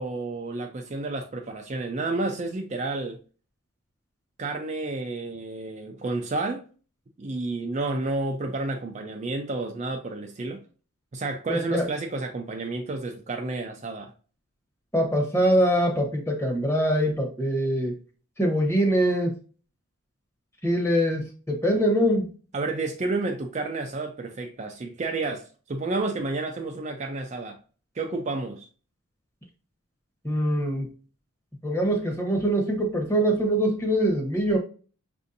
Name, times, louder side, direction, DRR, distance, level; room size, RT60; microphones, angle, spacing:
voice 1, 0.0-3.2 4.4-6.6 7.2-10.6 11.1-14.1 22.5-27.6 27.9-28.7, right 3 dB, 30° right, 0.4 m, -30 dB
voice 2, 11.5-11.9 14.9-18.0 18.4-19.3 20.6-22.3 30.2-30.9 31.6-34.6, equal, 10° left, 0.9 m, -23 dB
6.1 x 2.6 x 2.5 m
head